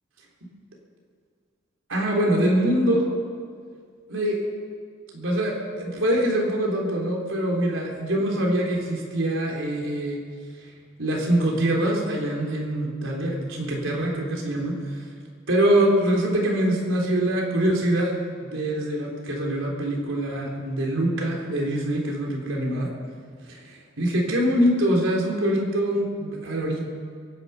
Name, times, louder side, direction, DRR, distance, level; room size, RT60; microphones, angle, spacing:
voice 1, 1.9-3.1 4.1-4.4 5.1-10.2 11.0-14.7 15.5-22.9 23.5-26.8, right 1 dB, 85° right, -1 dB, 3.4 m, -24 dB
23.0 x 10.0 x 5.7 m, 2.1 s
head